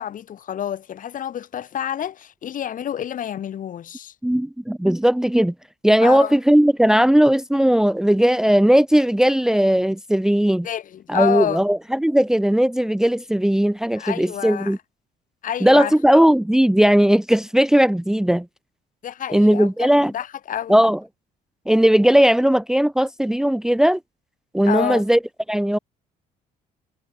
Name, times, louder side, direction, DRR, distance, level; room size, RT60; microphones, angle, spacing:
voice 1, 0.0-4.1 6.0-6.3 10.6-11.6 14.0-14.7 15.4-15.9 19.0-20.8 24.7-25.0, left 10 dB, 50° left, 2.3 m, -28 dB
voice 2, 4.2-5.5 5.8-10.7 11.1-14.8 15.6-18.5 19.3-20.1 20.7-21.0 21.7-24.0 24.5-25.2 25.5-25.8, equal, 5° right, 0.8 m, -17 dB
cardioid pair, 110°, 17 cm